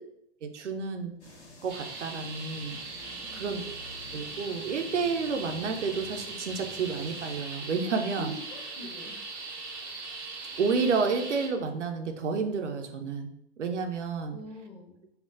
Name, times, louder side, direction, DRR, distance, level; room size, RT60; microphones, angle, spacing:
voice 1, 0.4-1.1 1.6-2.8 3.3-3.6 4.1-8.3 10.6-13.3 13.6-14.4, right 5 dB, 85° right, 5 dB, 0.6 m, -30 dB
sound 1, 1.2-7.4, left 1 dB, 75° left, 1.3 m, -49 dB
sound 2, 1.7-11.5, right 3 dB, 20° right, 0.3 m, -40 dB
voice 2, 3.1-3.8 8.2-9.2 14.3-15.0, left 1 dB, 20° left, -1 dB, 0.6 m, -45 dB
4.2 x 2.0 x 2.5 m, 0.76 s
hypercardioid pair, 130°, 35 cm